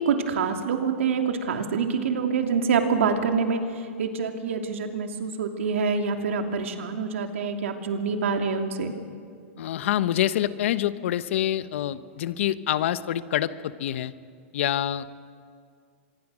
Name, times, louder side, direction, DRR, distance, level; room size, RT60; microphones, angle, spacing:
voice 1, 0.0-3.6 4.0-8.9, right 5 dB, 80° right, 5 dB, 2.7 m, -26 dB
voice 2, 9.6-14.1 14.5-15.1, left 12 dB, 70° left, 14 dB, 1.0 m, -26 dB
25.5 x 22.5 x 6.3 m, 2.2 s
hypercardioid pair, 125°, 7 cm